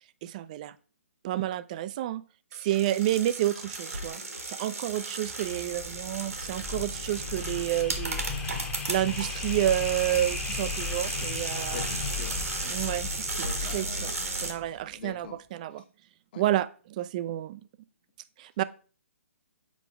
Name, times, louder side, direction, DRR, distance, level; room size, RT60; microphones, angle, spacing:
voice 1, 0.2-0.7 1.2-2.2 2.5-8.2 8.9-11.9 12.7-14.1 14.4-15.8 16.4-17.6 18.4-18.6, right 13 dB, 30° right, 16 dB, 0.3 m, -30 dB
sound 1, 2.5-14.5, right 2 dB, 85° right, 1.6 m, -35 dB
sound 2, 5.7-14.8, left 4 dB, 15° left, 0.9 m, -36 dB
voice 2, 11.7-12.5 13.4-15.4 15.7-15.8 16.3-16.4, left 7 dB, 40° left, 6 dB, 1.1 m, -44 dB
7.1 x 4.9 x 3.4 m, 0.38 s
hypercardioid pair, 140°, 8 cm